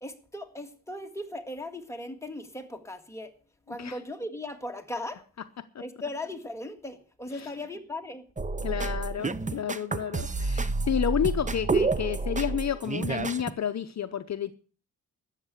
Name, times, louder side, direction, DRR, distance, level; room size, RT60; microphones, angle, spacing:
voice 1, 0.0-3.3 3.7-5.2 5.8-8.3, left 1 dB, 10° left, 4 dB, 1.9 m, -38 dB
sound 1, 8.4-13.5, right 3 dB, 20° right, 0.7 m, -29 dB
voice 2, 8.6-14.5, left 9 dB, 50° left, 10 dB, 0.8 m, -30 dB
13.5 x 8.1 x 8.2 m, 0.40 s
wide cardioid pair, 115°, 36 cm